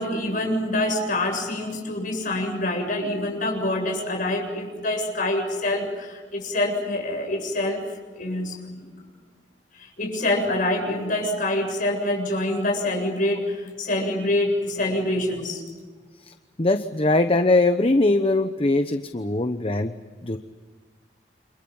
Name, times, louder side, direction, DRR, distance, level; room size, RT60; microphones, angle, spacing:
voice 1, 0.0-7.8 8.1-8.9 9.7-15.6, left 1 dB, 50° left, 3 dB, 7.8 m, -26 dB
voice 2, 16.6-19.9 20.2-20.4, left 2 dB, 35° left, 8 dB, 1.0 m, -21 dB
29.5 x 27.0 x 5.6 m, 1.4 s
head